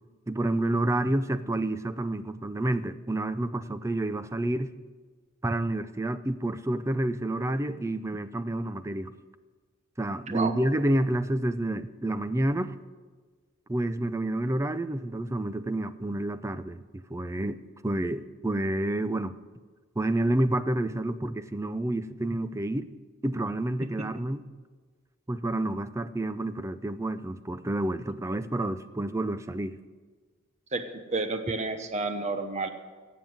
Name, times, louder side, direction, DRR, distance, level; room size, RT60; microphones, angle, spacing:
voice 1, 0.3-4.7 5.4-9.1 10.0-12.8 13.7-17.6 17.8-19.3 20.0-22.9 23.2-24.4 25.3-29.8, right 1 dB, 15° right, 13 dB, 0.4 m, -29 dB
voice 2, 31.1-32.7, right 3 dB, 35° right, 7 dB, 1.0 m, -30 dB
16.5 x 7.5 x 7.9 m, 1.5 s
head